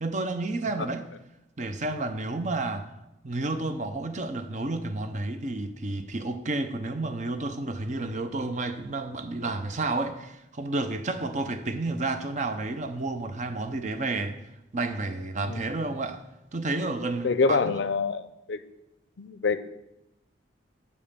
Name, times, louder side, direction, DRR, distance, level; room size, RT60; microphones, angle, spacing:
voice 1, 0.0-1.1 1.6-2.9 3.2-14.4 14.7-16.2 16.5-17.7, right 2 dB, 40° right, 8 dB, 0.7 m, -31 dB
voice 2, 17.2-18.6 19.2-19.7, left 4 dB, 65° left, 14 dB, 0.5 m, -26 dB
6.7 x 5.5 x 6.8 m, 0.90 s
head